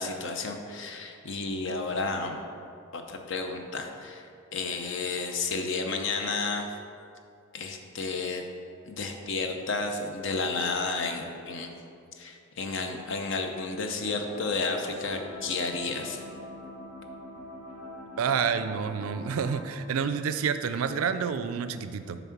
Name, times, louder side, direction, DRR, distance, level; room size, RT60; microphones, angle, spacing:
voice 1, 0.0-2.4 2.9-6.7 7.5-8.4 8.9-11.7 12.1-16.2, left 3 dB, 65° left, 4 dB, 0.7 m, -32 dB
sound 1, 14.0-19.7, left 1 dB, 80° left, 1.5 m, -44 dB
voice 2, 18.2-22.2, right 6 dB, 90° right, 11 dB, 0.4 m, -29 dB
7.2 x 3.6 x 5.8 m, 2.4 s
head